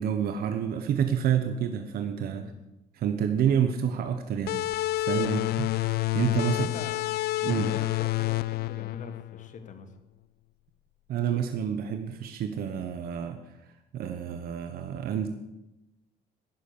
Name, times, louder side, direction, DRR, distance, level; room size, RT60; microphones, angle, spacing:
voice 1, 0.0-2.5 2.9-4.7 5.0-5.7 6.1-6.6 7.4-7.7 11.1-13.4 13.9-15.3, right 8 dB, 65° right, 7 dB, 1.1 m, -28 dB
sound 1, 4.5-9.7, left 18 dB, 70° left, 0.4 m, -29 dB
voice 2, 6.5-7.0 7.5-9.9, left 5 dB, 50° left, 9 dB, 1.6 m, -43 dB
11.0 x 10.0 x 6.8 m, 0.94 s
cardioid pair, 110°, 17 cm